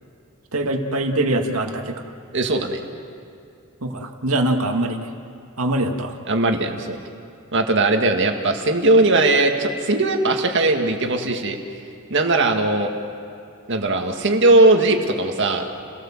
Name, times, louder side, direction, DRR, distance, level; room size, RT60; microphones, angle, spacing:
voice 1, 0.5-1.9 3.8-5.0 5.6-6.2, right 1 dB, 75° right, 4 dB, 2.0 m, -23 dB
voice 2, 2.3-2.8 6.3-7.0 7.5-11.6 12.1-12.9 13.7-15.7, right 2 dB, 55° right, 4 dB, 2.0 m, -19 dB
29.5 x 18.0 x 7.4 m, 2.6 s
head